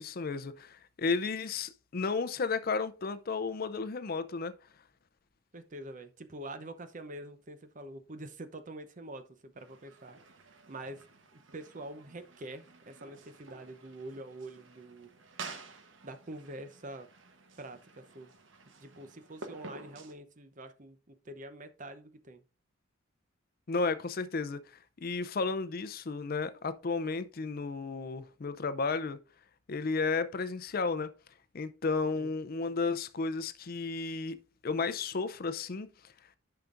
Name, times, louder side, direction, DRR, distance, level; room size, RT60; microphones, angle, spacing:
voice 1, 0.0-4.5 23.7-24.6 25.0-29.2 29.7-31.1 31.5-34.4 34.6-35.9, left 4 dB, 50° left, 0.5 m, -33 dB
voice 2, 5.5-10.2 10.7-11.1 11.3-15.1 16.0-17.1 17.6-18.3 18.7-22.4 32.2-32.3, right 1 dB, 40° right, 0.8 m, -45 dB
sound 1, 9.6-20.1, right 4 dB, 70° right, 1.1 m, -51 dB
10.5 x 5.7 x 2.5 m
head